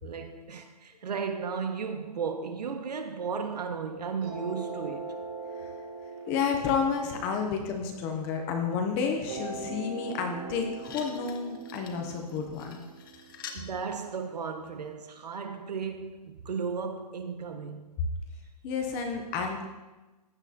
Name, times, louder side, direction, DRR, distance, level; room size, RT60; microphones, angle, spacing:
voice 1, 0.0-5.2 13.5-17.8, right 5 dB, 75° right, 1.4 m, -35 dB
sound 1, 4.2-8.6 9.3-14.2, right 4 dB, 40° right, 3.7 m, -42 dB
voice 2, 6.3-12.8 18.6-19.6, left 6 dB, 10° left, 0.5 m, -30 dB
sound 2, 10.4-10.5 10.8-13.7 14.7-14.8, left 7 dB, 30° left, 1.0 m, -46 dB
15.5 x 10.5 x 2.7 m
hypercardioid pair, 170°, 21 cm